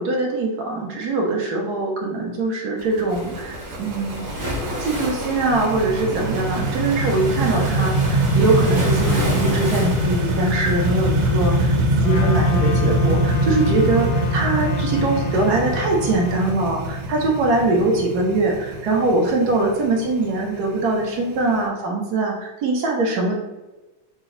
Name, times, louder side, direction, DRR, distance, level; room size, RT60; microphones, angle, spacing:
voice 1, 0.0-4.2 4.8-23.4, right 2 dB, 65° right, 0 dB, 1.0 m, -22 dB
sound 1, 2.8-21.6, right 1 dB, 90° right, 1.6 m, -23 dB
Waves surf, 3.1-11.8, equal, 45° right, 0.6 m, -31 dB
Trumpet, 12.0-16.5, left 4 dB, 90° left, 1.4 m, -34 dB
4.0 x 2.2 x 3.7 m, 1.1 s
omnidirectional pair, 2.3 m